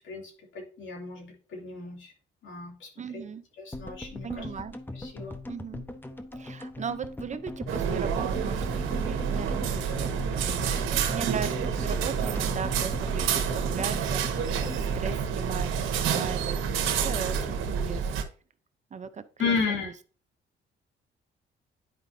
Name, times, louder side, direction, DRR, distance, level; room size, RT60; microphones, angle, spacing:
voice 1, 0.0-2.1 2.4-3.2 3.6-4.4 5.0-5.4 19.4-19.9, left 5 dB, 75° left, 0 dB, 2.8 m, -33 dB
voice 2, 3.0-3.4 4.2-4.8 5.5-5.8 6.3-16.6 16.9-18.1 18.9-19.6 19.8-19.9, right 6 dB, 35° right, 11 dB, 0.6 m, -38 dB
sound 1, 3.7-16.2 16.5-16.6, left 1 dB, 10° left, 0.9 m, -40 dB
sound 2, 7.7-18.2, right 7 dB, 85° right, 1.1 m, -28 dB
10.0 x 5.1 x 2.7 m, 0.38 s
cardioid pair, 90°, 20 cm